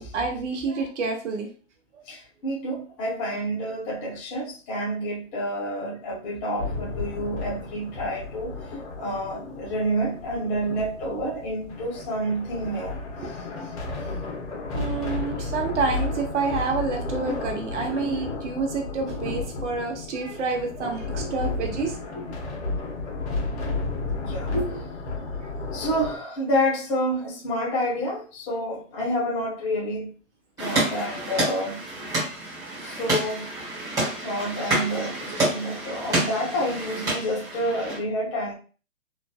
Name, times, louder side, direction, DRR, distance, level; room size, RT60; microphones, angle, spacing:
voice 1, 0.0-1.5 13.2-13.3 14.3-14.4 14.7-22.0 25.4-25.5 34.0-34.2, right 4 dB, 60° right, 2 dB, 0.9 m, -28 dB
voice 2, 2.1-8.6 9.0-12.9 13.2-13.3 21.0-21.5 22.1-22.3 24.1-24.9 25.7-30.1 30.6-31.8 32.8-33.5 34.2-38.5, equal, 15° left, -4 dB, 0.6 m, -29 dB
sound 1, 6.6-26.2, left 3 dB, 55° left, 1.0 m, -33 dB
sound 2, 30.6-38.0, right 2 dB, 10° right, 1.3 m, -29 dB
3.1 x 2.4 x 2.2 m, 0.37 s
hypercardioid pair, 140°, 40 cm